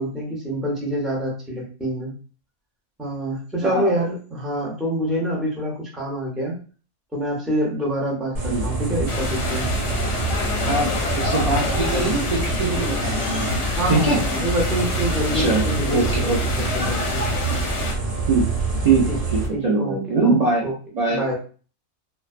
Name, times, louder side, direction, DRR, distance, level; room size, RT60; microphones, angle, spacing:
voice 1, 0.0-2.1 3.0-6.6 7.1-9.7 11.5-12.2 13.7-17.2 19.1-19.2 19.5-20.0 20.2-20.4 20.6-20.7 21.1-21.4, equal, ahead, -3 dB, 0.4 m, -26 dB
voice 2, 3.6-3.9 8.4-8.6 10.7-13.6 13.9-14.2 15.3-16.4 18.3-18.5 18.8-20.6 20.9-21.2, right 3 dB, 65° right, -4 dB, 0.4 m, -22 dB
sound 1, 8.4-19.5, right 3 dB, 45° right, 0.8 m, -26 dB
sound 2, 9.1-17.9, left 3 dB, 60° left, 0.8 m, -27 dB
2.4 x 2.2 x 2.4 m, 0.39 s
omnidirectional pair, 1.4 m